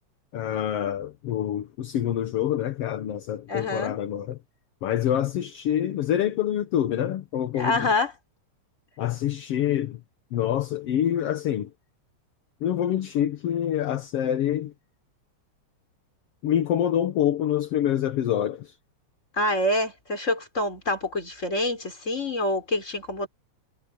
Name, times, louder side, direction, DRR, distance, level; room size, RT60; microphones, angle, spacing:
voice 1, 0.3-4.4 4.8-7.9 9.0-10.0 10.3-11.7 12.6-14.7 16.4-18.8, left 10 dB, 60° left, 1.9 m, -26 dB
voice 2, 3.5-4.0 7.5-8.1 19.4-23.3, left 1 dB, 25° left, 5.1 m, -26 dB
omnidirectional pair, 3.4 m